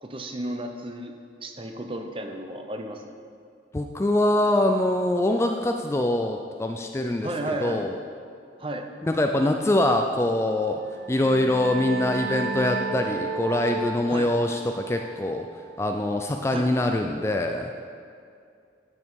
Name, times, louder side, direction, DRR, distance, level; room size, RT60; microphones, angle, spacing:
voice 1, 0.0-1.1 1.4-3.1 7.2-7.8 8.6-8.9 14.1-14.3 16.5-16.7, right 1 dB, 30° right, 4 dB, 0.7 m, -33 dB
voice 2, 3.7-8.0 9.0-10.8 11.1-15.5 15.8-17.8, left 1 dB, 15° left, 4 dB, 0.3 m, -24 dB
sound 1, 10.9-16.2, right 5 dB, 75° right, 0.6 m, -33 dB
13.5 x 5.4 x 4.7 m, 2.4 s
head